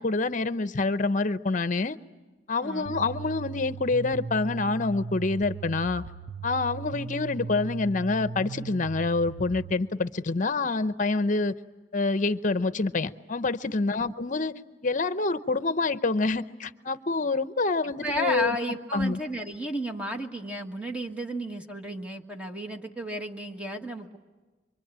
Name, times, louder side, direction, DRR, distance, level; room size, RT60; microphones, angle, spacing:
voice 1, 0.0-2.0 2.5-6.0 6.4-11.5 11.9-14.5 14.8-18.6 18.9-19.2, left 3 dB, 45° left, 13 dB, 0.8 m, -27 dB
voice 2, 2.6-3.1 18.0-24.2, equal, 5° right, 3 dB, 1.6 m, -33 dB
sound 1, 2.9-9.7, right 4 dB, 75° right, 0.8 m, -38 dB
26.0 x 24.5 x 8.9 m, 1.2 s
head